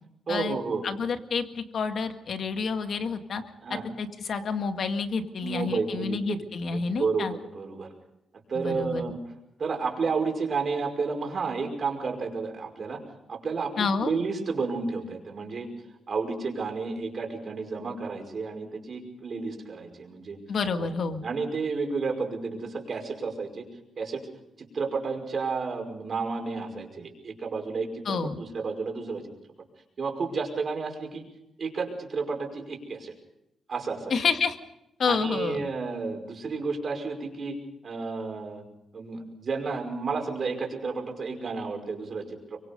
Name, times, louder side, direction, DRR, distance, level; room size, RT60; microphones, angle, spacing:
voice 1, 0.3-0.9 3.6-3.8 5.4-6.4 6.7-7.9 8.5-9.2 9.6-13.0 13.3-15.7 16.1-20.4 20.8-21.0 21.2-23.7 24.0-24.3 24.6-29.2 30.0-31.2 31.6-33.1 33.7-34.2 35.0-37.6 37.8-38.6 38.9-42.6, right 4 dB, 50° right, 3 dB, 5.4 m, -31 dB
voice 2, 0.8-3.4 3.7-7.3 8.6-9.0 13.8-14.1 20.5-21.2 28.1-28.4 34.1-34.6 35.0-35.6, left 5 dB, 60° left, 7 dB, 2.0 m, -29 dB
24.0 x 24.0 x 5.4 m, 0.84 s
cardioid pair, 100°, 0 cm